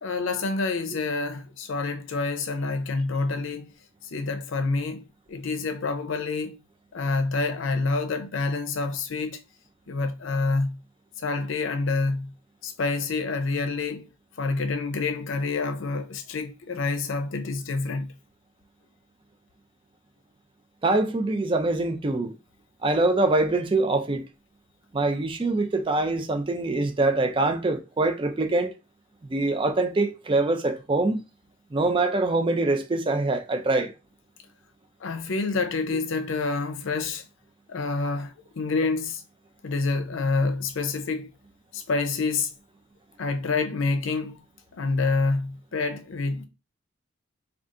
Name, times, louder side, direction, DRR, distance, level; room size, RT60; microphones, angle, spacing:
voice 1, 0.0-3.7 4.1-5.0 5.3-6.6 6.9-9.4 9.9-10.8 11.2-12.3 12.6-14.1 14.4-18.1 35.0-37.2 37.7-39.2 39.6-41.3 41.7-42.5 43.2-44.4 44.8-46.4, left 3 dB, 65° left, 0.5 m, -27 dB
voice 2, 20.8-22.3 22.8-24.2 24.9-28.7 29.3-31.2 31.7-33.9, right 2 dB, 25° right, 0.4 m, -24 dB
3.7 x 2.4 x 3.7 m
head